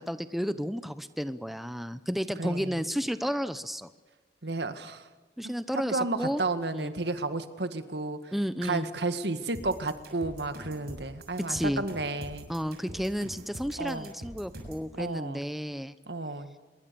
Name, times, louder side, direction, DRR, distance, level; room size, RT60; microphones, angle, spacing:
voice 1, 0.0-3.9 5.4-6.4 6.7-6.9 8.3-8.9 11.5-11.8 12.5-15.9, equal, ahead, 11 dB, 0.8 m, -32 dB
voice 2, 2.4-2.8 4.4-5.1 5.4-8.3 8.6-12.5 13.8-14.1 15.0-15.4 16.1-16.5, right 2 dB, 75° right, 9 dB, 1.8 m, -32 dB
sound 1, 9.5-14.9, equal, 60° right, 6.7 m, -44 dB
25.5 x 22.5 x 7.0 m, 1.3 s
head